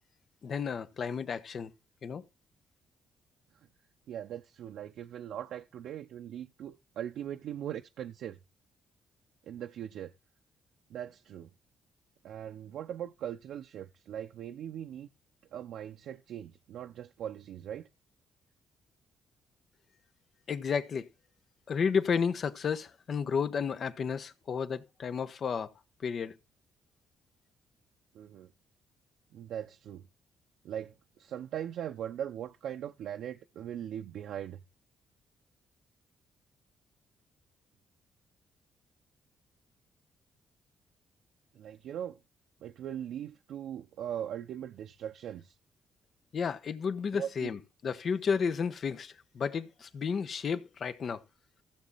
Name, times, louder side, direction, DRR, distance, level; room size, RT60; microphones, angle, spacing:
voice 1, 0.4-1.7 2.0-2.2 20.5-21.1 21.7-25.7 26.0-26.3 46.3-51.2, left 6 dB, 55° left, 1.1 m, -32 dB
voice 2, 4.1-8.4 9.4-10.1 10.9-11.5 12.2-15.1 15.5-17.9 28.1-28.5 29.3-30.0 30.6-34.6 41.5-42.2 42.6-45.5 47.1-47.5, right 10 dB, 75° right, 0.8 m, -40 dB
15.0 x 7.3 x 4.1 m
supercardioid pair, 65°, 0 cm